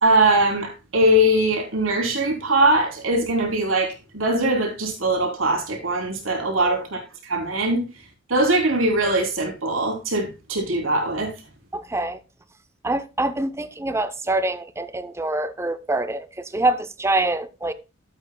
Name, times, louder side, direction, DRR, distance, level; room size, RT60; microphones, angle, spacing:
voice 1, 0.0-7.8 8.3-11.3, right 1 dB, 85° right, 3.2 m, -21 dB
voice 2, 11.7-12.2 12.8-17.7, right 2 dB, 15° right, 0.6 m, -25 dB
13.0 x 8.2 x 2.2 m
head